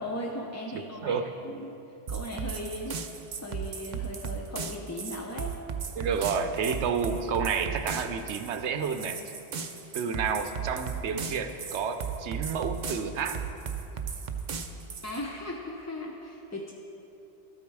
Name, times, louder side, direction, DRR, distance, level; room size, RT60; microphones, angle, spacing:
voice 1, 0.0-1.7 2.1-3.0 3.4-5.6 15.0-16.7, left 1 dB, 20° left, -1 dB, 0.5 m, -37 dB
voice 2, 0.7-1.3 6.0-9.2 9.9-13.4, right 6 dB, 70° right, 8 dB, 1.0 m, -30 dB
sound 1, 2.1-15.2, right 6 dB, 50° right, 0.6 m, -36 dB
12.5 x 8.6 x 4.7 m, 2.9 s
omnidirectional pair, 1.2 m